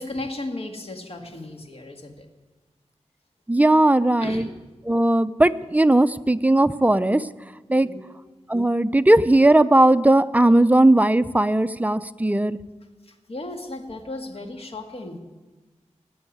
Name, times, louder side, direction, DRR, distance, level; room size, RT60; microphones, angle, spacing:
voice 1, 0.0-2.3 4.2-4.5 7.7-8.0 13.1-15.2, left 2 dB, 55° left, 4 dB, 1.9 m, -35 dB
voice 2, 3.5-4.5 4.9-7.2 7.7-7.9 8.5-12.6, right 1 dB, 15° right, 13 dB, 0.5 m, -18 dB
17.5 x 7.2 x 9.3 m, 1.3 s
wide cardioid pair, 70°, 12 cm